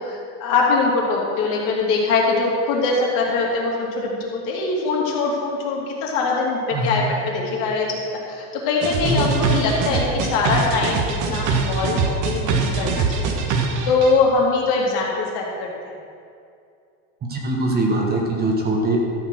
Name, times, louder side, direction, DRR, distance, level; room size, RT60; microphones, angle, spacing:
voice 1, 0.0-8.0 8.3-13.4 13.8-15.7, left 3 dB, 55° left, -2 dB, 2.9 m, -22 dB
voice 2, 6.7-7.0 9.0-9.3 17.3-19.0, right 2 dB, 25° right, 0 dB, 1.5 m, -22 dB
sound 1, 8.8-14.1, right 4 dB, 50° right, 1.5 m, -23 dB
13.0 x 7.1 x 6.4 m, 2.4 s
cardioid pair, 155°, 40 cm